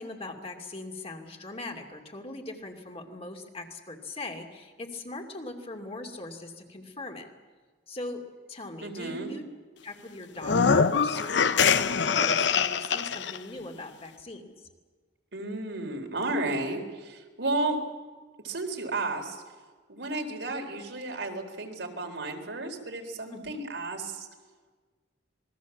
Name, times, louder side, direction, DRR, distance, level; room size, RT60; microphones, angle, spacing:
voice 1, 0.0-7.3 7.9-9.4 9.8-14.7 23.3-23.6, left 2 dB, 35° left, 3 dB, 2.7 m, -40 dB
voice 2, 8.8-9.3 15.3-17.8 18.4-19.4 19.9-24.3, right 2 dB, 80° right, 2 dB, 4.1 m, -33 dB
sound 1, 10.4-13.4, left 6 dB, 70° left, 0.8 m, -23 dB
27.0 x 21.0 x 7.4 m, 1.4 s
head